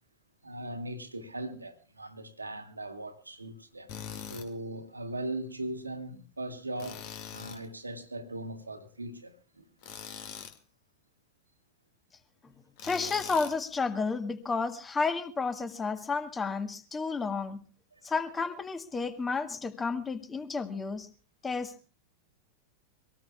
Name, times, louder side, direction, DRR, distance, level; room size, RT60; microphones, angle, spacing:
voice 1, 0.4-7.0 7.3-9.6 17.9-18.1, right 1 dB, 80° right, 2.1 m, -39 dB
Tools, 3.9-4.5 6.8-7.7 9.8-10.6 12.8-13.6, left 9 dB, 45° left, 2.2 m, -42 dB
voice 2, 12.8-17.6 18.0-21.1 21.4-21.7, left 4 dB, 15° left, 1.8 m, -31 dB
25.0 x 18.5 x 2.4 m
figure-of-eight pair, 90°, 0 cm